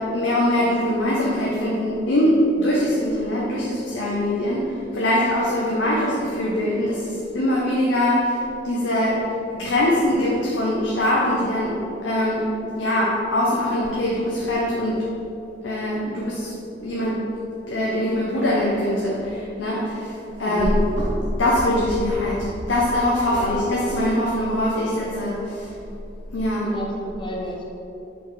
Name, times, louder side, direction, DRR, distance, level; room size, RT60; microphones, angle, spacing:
voice 1, 0.0-9.2 9.5-11.8 12.0-12.5 12.8-15.0 15.6-16.5 16.8-17.2 17.7-21.1 21.4-25.7 26.3-26.7, left 1 dB, 85° left, -5 dB, 0.9 m, -22 dB
voice 2, 20.4-20.8 23.3-23.6 26.6-27.7, equal, 25° left, -2 dB, 0.6 m, -31 dB
4.9 x 4.0 x 4.8 m, 2.8 s
head